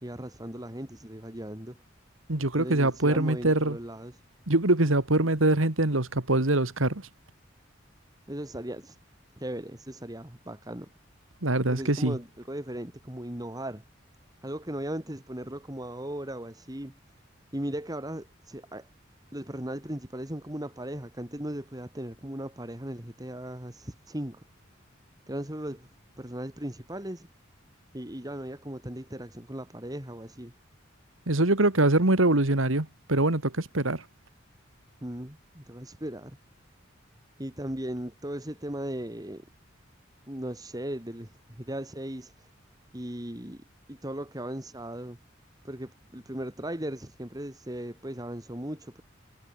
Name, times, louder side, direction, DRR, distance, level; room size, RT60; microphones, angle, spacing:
voice 1, 0.0-1.8 2.6-4.2 8.3-9.0 9.4-10.9 11.7-13.8 14.4-17.0 17.5-18.9 19.3-24.4 25.3-25.9 26.2-27.3 27.9-30.5 35.0-36.4 37.4-39.4 40.3-42.5 42.9-43.6 43.9-45.2 45.6-49.0, right 1 dB, 20° right, 2.8 m, -37 dB
voice 2, 2.3-3.8 4.5-7.0 11.4-12.2 31.3-34.0, right 2 dB, 85° right, 2.4 m, -24 dB
head